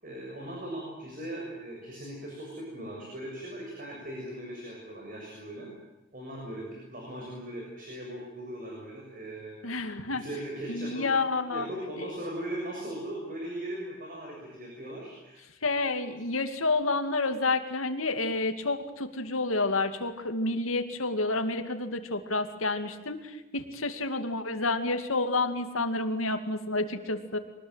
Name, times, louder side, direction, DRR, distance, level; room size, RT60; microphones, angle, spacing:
voice 1, 0.0-5.7 6.1-9.6 10.0-11.1 11.5-15.4, right 1 dB, 40° right, -1 dB, 6.9 m, -39 dB
voice 2, 9.6-10.2 10.7-11.7 15.6-27.4, left 3 dB, 85° left, 8 dB, 2.5 m, -29 dB
24.0 x 20.0 x 9.2 m, 1.1 s
head